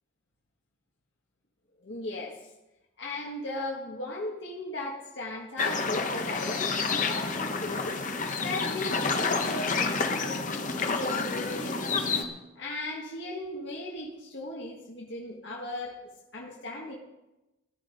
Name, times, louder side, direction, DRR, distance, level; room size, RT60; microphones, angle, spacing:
voice 1, 1.8-2.4 3.0-8.0 8.4-11.9 12.5-16.9, left 2 dB, 55° left, -3 dB, 1.7 m, -37 dB
sound 1, 5.6-12.2, left 4 dB, 40° left, 1.1 m, -29 dB
14.5 x 11.0 x 5.3 m, 1.0 s
head